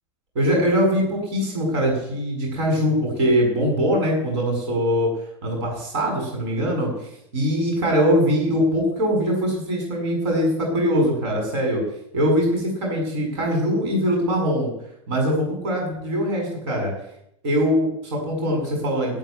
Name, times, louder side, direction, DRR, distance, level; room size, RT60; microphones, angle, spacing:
voice 1, 0.3-5.1 5.4-6.9 7.3-11.8 12.1-14.7 15.1-16.9 17.4-19.2, equal, 55° right, 1 dB, 7.9 m, -22 dB
14.0 x 7.5 x 9.8 m, 0.76 s
figure-of-eight pair, 90°, 17 cm